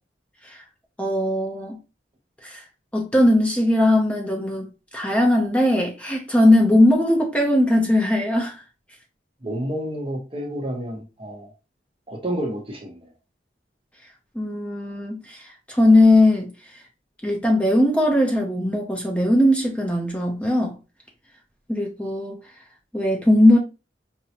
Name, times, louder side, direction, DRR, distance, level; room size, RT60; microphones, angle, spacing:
voice 1, 1.0-1.8 2.4-2.6 2.9-8.5 14.4-15.4 15.7-16.5 17.2-20.7 21.7-22.4 22.9-23.6, left 1 dB, 5° left, 0.6 m, -19 dB
voice 2, 9.4-11.5 12.1-13.1, equal, 30° right, 1.0 m, -30 dB
5.2 x 2.1 x 2.8 m
head